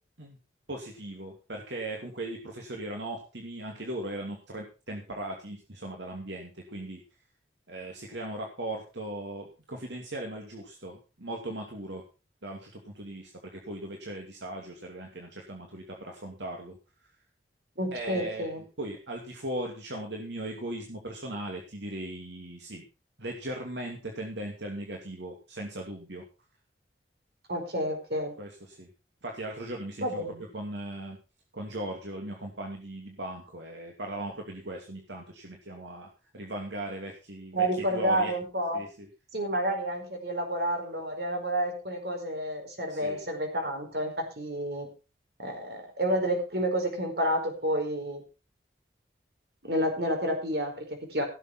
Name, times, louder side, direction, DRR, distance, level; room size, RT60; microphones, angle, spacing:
voice 1, 0.7-7.0 7.7-12.0 12.4-17.1 17.9-18.5 18.8-22.8 23.2-26.2 28.4-28.9 29.2-30.2 30.5-31.2 31.5-38.3 38.7-39.1 42.9-43.2, right 1 dB, 80° right, 1 dB, 2.6 m, -38 dB
voice 2, 17.8-18.6 27.5-28.3 30.0-30.4 37.5-38.8 39.3-44.9 45.4-48.2 49.7-51.2, right 1 dB, 60° right, 4 dB, 4.8 m, -30 dB
17.0 x 7.2 x 5.8 m, 0.32 s
head